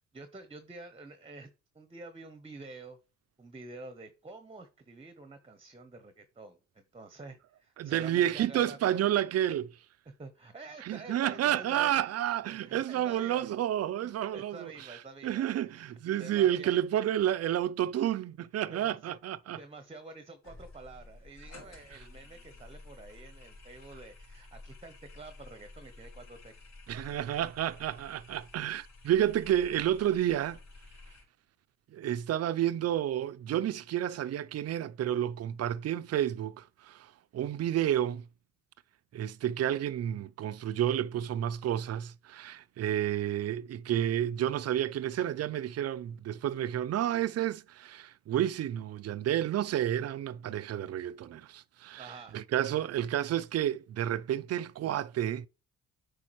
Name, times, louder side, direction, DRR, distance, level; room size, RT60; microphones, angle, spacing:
voice 1, 0.1-1.5 1.7-3.0 3.4-8.8 10.2-11.9 12.6-13.5 14.3-16.7 18.7-19.2 19.5-26.5 52.0-52.4, right 3 dB, 20° right, 0.9 m, -48 dB
voice 2, 7.8-9.7 10.8-19.6 26.9-30.6 31.9-38.3 39.1-55.5, right 11 dB, 55° right, 0.5 m, -30 dB
sound 1, 20.4-31.2, left 3 dB, 65° left, 4.4 m, -52 dB
8.4 x 4.9 x 3.1 m
cardioid pair, 90°, 30 cm